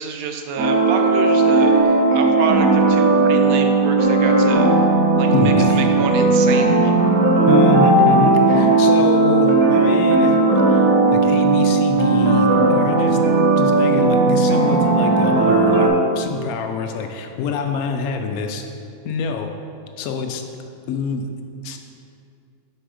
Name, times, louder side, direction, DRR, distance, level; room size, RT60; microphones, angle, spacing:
voice 1, 0.0-4.7 5.2-6.9 13.8-13.9, right 6 dB, 60° right, 5 dB, 0.9 m, -28 dB
sound 1, 0.6-15.9, right 3 dB, 80° right, 1.4 m, -16 dB
voice 2, 5.3-5.9 7.5-10.4 10.7-13.2 13.6-18.6 19.0-19.5 20.0-20.4 20.9-21.3 21.6-21.8, left 5 dB, 85° left, 5 dB, 1.1 m, -25 dB
6.2 x 5.5 x 4.8 m, 2.4 s
omnidirectional pair, 1.5 m